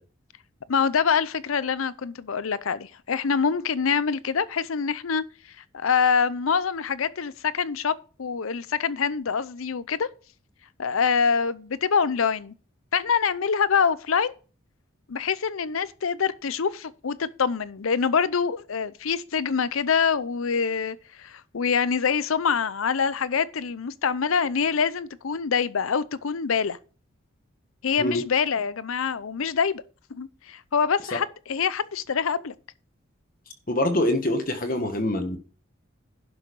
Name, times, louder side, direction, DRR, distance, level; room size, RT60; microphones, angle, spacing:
voice 1, 0.7-5.2 5.7-7.9 8.2-10.1 10.8-12.5 12.9-14.3 15.1-26.8 27.8-29.8 30.1-32.5, left 6 dB, 80° left, 0.6 m, -25 dB
voice 2, 33.7-35.4, left 1 dB, 45° left, 1.5 m, -25 dB
11.5 x 6.3 x 4.7 m
head